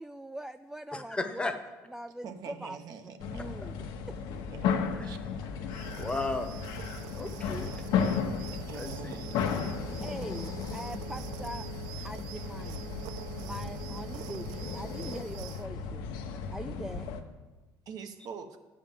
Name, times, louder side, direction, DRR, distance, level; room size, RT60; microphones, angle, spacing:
voice 1, 0.0-1.6 1.9-2.8 3.2-3.7 4.1-4.2 10.0-11.7 12.0-12.9 13.4-16.1 16.5-17.1, right 1 dB, 5° right, 10 dB, 0.4 m, -42 dB
voice 2, 0.9-1.6 3.4-3.5 4.9-5.2 5.9-6.6 7.1-7.7 8.7-9.2, left 2 dB, 15° left, 7 dB, 1.0 m, -35 dB
voice 3, 2.2-3.4 4.5-4.7 5.0-5.2 8.7-9.4 17.9-18.6, right 6 dB, 60° right, 7 dB, 1.1 m, -44 dB
sound 1, 3.2-17.2, left 6 dB, 75° left, 1.0 m, -35 dB
sound 2, 5.7-15.7, right 15 dB, 80° right, 0.4 m, -45 dB
sound 3, 6.8-15.2, left 8 dB, 55° left, 0.6 m, -47 dB
10.5 x 5.0 x 7.4 m, 1.2 s
supercardioid pair, 85°, 7 cm